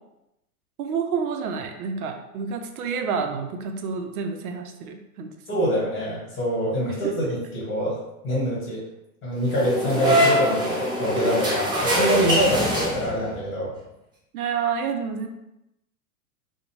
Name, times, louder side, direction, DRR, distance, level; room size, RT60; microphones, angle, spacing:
voice 1, 0.8-5.7 7.0-7.1 12.5-12.6 14.3-15.3, right 6 dB, 80° right, 5 dB, 0.5 m, -29 dB
voice 2, 5.5-8.8 9.2-13.7, equal, 30° left, -5 dB, 1.4 m, -25 dB
sound 1, 9.5-13.4, equal, 10° right, 0.4 m, -23 dB
2.5 x 2.1 x 3.0 m, 0.89 s
hypercardioid pair, 120°, 44 cm